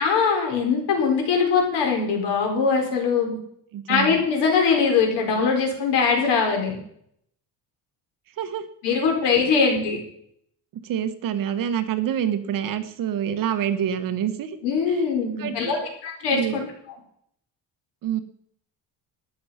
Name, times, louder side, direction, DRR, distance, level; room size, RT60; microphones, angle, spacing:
voice 1, 0.0-3.3 3.9-6.8 8.8-10.0 14.6-16.6, left 5 dB, 70° left, 2 dB, 4.8 m, -22 dB
voice 2, 3.7-4.2 8.4-9.1 9.7-9.8 10.8-14.6 14.9-15.9 16.3-16.6 18.0-18.2, right 9 dB, 50° right, 9 dB, 1.3 m, -27 dB
13.0 x 10.0 x 5.7 m, 0.68 s
cardioid pair, 175°, 42 cm